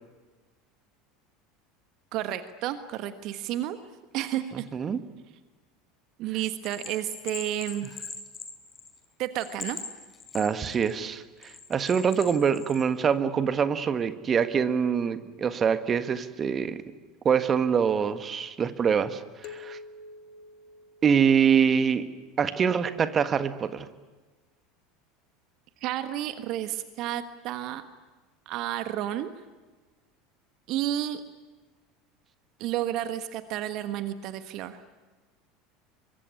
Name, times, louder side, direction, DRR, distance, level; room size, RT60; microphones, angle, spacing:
voice 1, 2.1-3.8 4.1-4.6 6.2-7.9 9.2-9.8 25.8-27.8 28.5-29.3 30.7-31.2 32.6-34.8, right 12 dB, 50° right, 11 dB, 1.4 m, -31 dB
Bell, 6.6-9.0 9.4-10.9 11.4-12.8, left 5 dB, 25° left, 4.5 m, -40 dB
voice 2, 10.3-16.8 17.2-19.8 21.0-22.0 22.4-23.9, right 7 dB, 30° right, 11 dB, 1.6 m, -25 dB
sound 1, 19.4-21.8, left 4 dB, 50° left, 2.0 m, -47 dB
24.0 x 22.5 x 9.8 m, 1.3 s
figure-of-eight pair, 75°, 0 cm